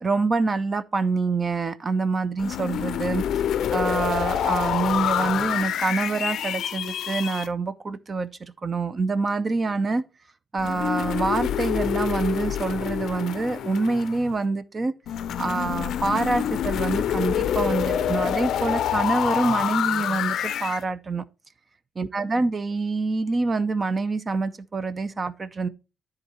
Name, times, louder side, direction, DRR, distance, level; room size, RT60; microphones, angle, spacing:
voice 1, 0.0-3.2 3.7-10.0 10.5-14.9 15.4-21.2 22.0-25.7, right 3 dB, 35° right, 0.6 m, -26 dB
sound 1, 2.4-7.5 10.6-14.4 15.1-20.8, left 10 dB, 75° left, 0.5 m, -27 dB
9.9 x 3.9 x 4.4 m
cardioid pair, 90°, 0 cm